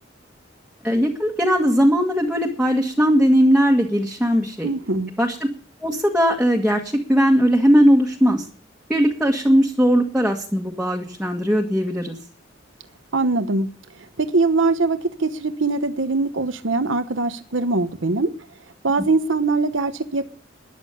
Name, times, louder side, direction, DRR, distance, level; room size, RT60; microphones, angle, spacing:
voice 1, 0.8-4.7 5.2-5.4 5.8-6.8 7.1-8.4 8.9-12.1, equal, 5° right, 1.7 m, -18 dB
voice 2, 4.6-5.1 13.1-13.7 14.2-18.3 18.8-20.3, right 3 dB, 90° right, 1.0 m, -22 dB
13.5 x 10.5 x 6.8 m
head